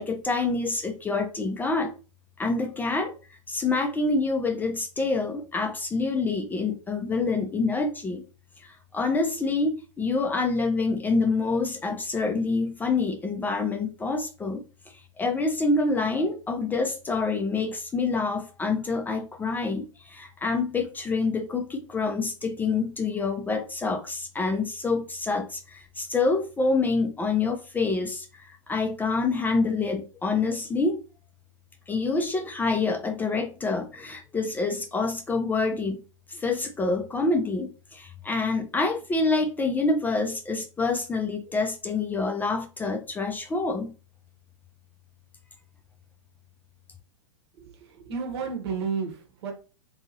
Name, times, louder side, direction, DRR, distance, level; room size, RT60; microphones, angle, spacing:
voice 1, 0.0-1.9 2.4-3.1 3.5-8.2 8.6-31.0 31.9-36.0 36.3-43.9, left 3 dB, 10° left, 4 dB, 0.4 m, -27 dB
voice 2, 47.6-49.5, right 5 dB, 55° right, 3 dB, 1.0 m, -32 dB
2.7 x 2.6 x 2.7 m, 0.34 s
figure-of-eight pair, 105°, 16 cm